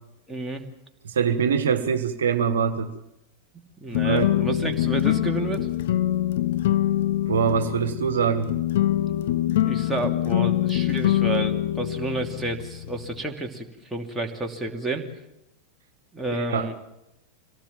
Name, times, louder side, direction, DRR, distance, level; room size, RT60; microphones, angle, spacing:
voice 1, 0.3-0.6 3.8-5.7 9.6-15.0 16.1-16.7, right 2 dB, 5° right, 0 dB, 2.8 m, -30 dB
voice 2, 1.0-2.9 4.0-4.3 7.3-8.5 16.3-16.7, right 6 dB, 65° right, 8 dB, 1.5 m, -23 dB
sound 1, 3.9-13.2, left 13 dB, 55° left, 0.8 m, -24 dB
25.5 x 18.0 x 7.4 m, 0.87 s
figure-of-eight pair, 90°, 0 cm